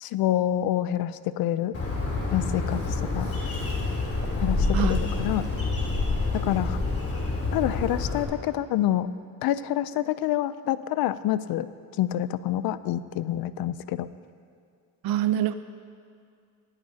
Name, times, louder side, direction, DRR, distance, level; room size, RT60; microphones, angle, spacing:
voice 1, 0.0-1.8 2.3-2.8 3.1-3.3 4.4-5.5 6.3-6.8 7.5-9.1 9.4-11.7 12.0-14.1, left 13 dB, 85° left, 15 dB, 0.5 m, -27 dB
Bird, 1.7-8.2, left 3 dB, 40° left, 3.4 m, -27 dB
voice 2, 4.7-5.1 15.0-15.5, right 11 dB, 85° right, 12 dB, 0.7 m, -25 dB
19.5 x 13.0 x 2.8 m, 2.3 s
cardioid pair, 85°, 35 cm